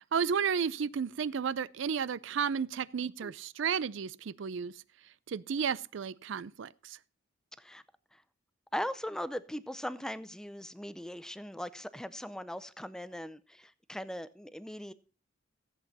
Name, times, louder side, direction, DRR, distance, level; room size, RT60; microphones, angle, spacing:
voice 1, 0.1-4.7 5.3-7.0, right 6 dB, 65° right, 0.4 m, -32 dB
voice 2, 8.7-14.9, equal, 5° left, 0.5 m, -39 dB
14.5 x 8.0 x 4.0 m
head